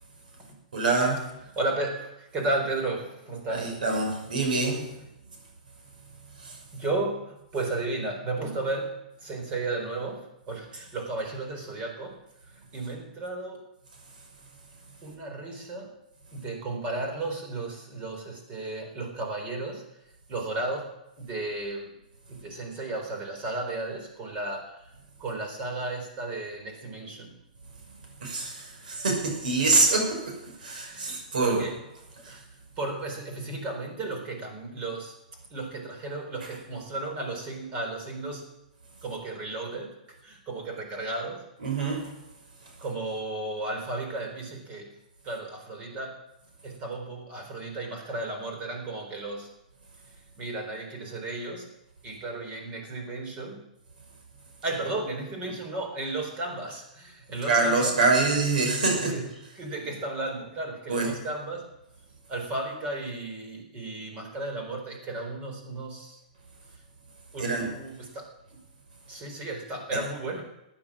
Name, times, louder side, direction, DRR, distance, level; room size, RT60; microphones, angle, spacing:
voice 1, 0.7-1.2 3.5-4.9 6.4-6.6 28.2-31.7 32.2-32.4 41.6-42.1 57.4-59.2 60.9-61.1 67.4-67.7 69.9-70.0, right 3 dB, 85° right, 2 dB, 6.1 m, -25 dB
voice 2, 1.6-3.8 6.7-12.2 12.5-13.6 15.0-15.9 16.3-19.8 20.3-20.9 21.2-21.9 22.3-24.9 25.2-27.3 30.9-31.7 32.3-32.4 32.8-35.1 35.5-38.5 39.0-40.0 40.2-41.5 42.8-44.9 45.2-46.2 46.6-49.5 50.4-51.7 52.0-53.6 54.6-57.9 58.9-59.3 59.6-61.7 62.3-66.2 67.3-68.3 69.1-70.4, right 2 dB, 25° right, 3 dB, 4.2 m, -34 dB
15.0 x 10.0 x 7.5 m, 0.89 s
hypercardioid pair, 150°, 4 cm